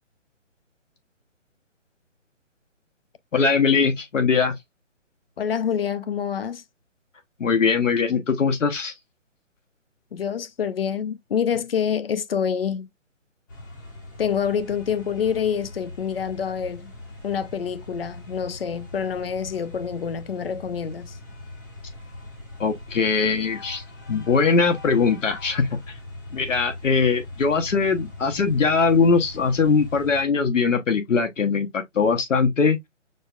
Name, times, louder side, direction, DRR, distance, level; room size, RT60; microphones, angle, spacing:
voice 1, 3.3-4.6 7.4-8.9 22.6-23.8 24.1-25.8 26.3-32.8, left 5 dB, 75° left, 1.0 m, -21 dB
voice 2, 5.4-6.6 10.1-12.9 14.2-16.9 17.2-21.2, left 7 dB, 50° left, 0.6 m, -27 dB
sound 1, 13.5-30.2, left 2 dB, 15° left, 0.7 m, -41 dB
6.5 x 2.3 x 2.3 m
hypercardioid pair, 155°, 38 cm